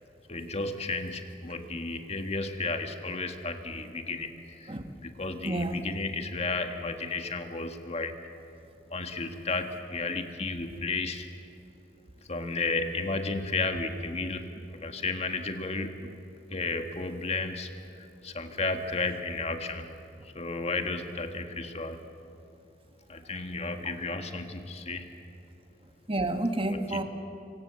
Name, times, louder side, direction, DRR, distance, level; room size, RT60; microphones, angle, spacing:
voice 1, 0.3-4.3 4.6-4.7 5.0-8.1 8.9-11.3 12.3-14.5 14.8-16.1 16.5-17.7 18.2-19.9 20.3-22.0 23.1-25.0 26.7-27.0, left 3 dB, 35° left, 6 dB, 1.8 m, -33 dB
voice 2, 5.4-5.8 26.1-27.0, right 2 dB, 30° right, 7 dB, 1.5 m, -29 dB
26.0 x 24.0 x 7.7 m, 2.8 s
head